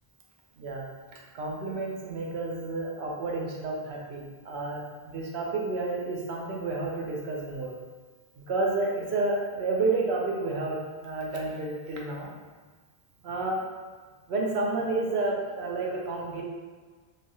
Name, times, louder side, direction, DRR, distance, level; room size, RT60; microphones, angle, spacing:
voice 1, 0.6-7.7 8.4-12.3 13.2-13.6 14.3-16.4, right 3 dB, 85° right, -1 dB, 0.9 m, -30 dB
3.3 x 2.3 x 2.6 m, 1.5 s
omnidirectional pair, 1.1 m